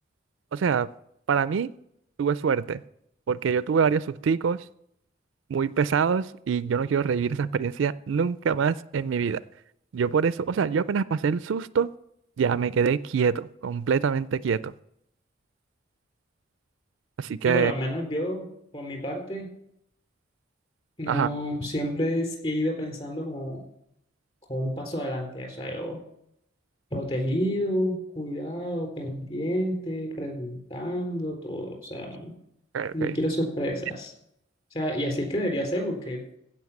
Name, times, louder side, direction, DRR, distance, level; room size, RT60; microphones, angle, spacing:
voice 1, 0.5-0.9 1.3-1.7 2.2-2.8 3.3-4.6 5.5-9.4 9.9-11.9 12.4-14.7 17.2-17.7 21.1-21.3 32.7-33.2, right 6 dB, 70° right, 17 dB, 0.4 m, -25 dB
voice 2, 17.4-18.5 18.7-19.5 21.0-23.7 24.5-26.0 26.9-32.3 32.9-34.1 34.7-36.2, equal, 30° left, 2 dB, 3.9 m, -29 dB
16.0 x 5.4 x 7.2 m, 0.76 s
head